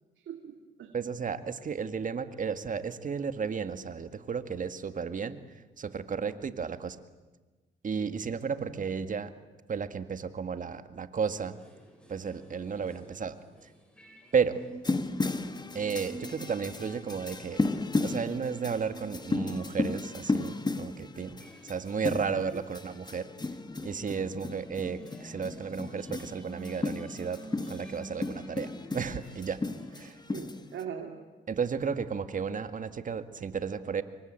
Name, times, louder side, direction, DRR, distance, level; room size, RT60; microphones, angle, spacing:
voice 1, 0.2-0.9 8.0-8.8 12.9-13.1 22.5-22.6 30.3-31.1, right 8 dB, 70° right, 3 dB, 2.8 m, -42 dB
voice 2, 0.9-5.4 5.8-7.0 7.8-9.3 9.7-11.6 12.1-13.7 14.3-14.6 15.7-17.6 18.0-23.3 23.8-27.4 27.7-29.6 29.9-30.2 31.5-34.0, right 6 dB, 40° right, 11 dB, 1.8 m, -33 dB
sound 1, 11.5-17.3 17.6-30.1, right 1 dB, 5° left, 7.1 m, -50 dB
sound 2, 14.8-30.8, left 3 dB, 20° left, 1.6 m, -34 dB
26.5 x 23.5 x 8.9 m, 1.3 s
cardioid pair, 90°, 20 cm